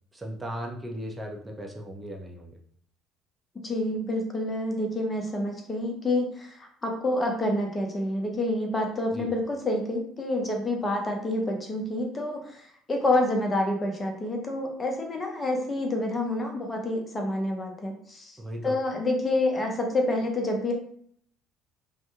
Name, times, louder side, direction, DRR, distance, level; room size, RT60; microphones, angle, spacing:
voice 1, 0.1-2.6 9.1-9.3 18.4-18.7, equal, 15° right, 0 dB, 0.6 m, -37 dB
voice 2, 3.6-18.4 18.6-20.7, left 1 dB, 25° left, 2 dB, 0.7 m, -28 dB
2.6 x 2.2 x 2.8 m, 0.62 s
figure-of-eight pair, 55°, 0 cm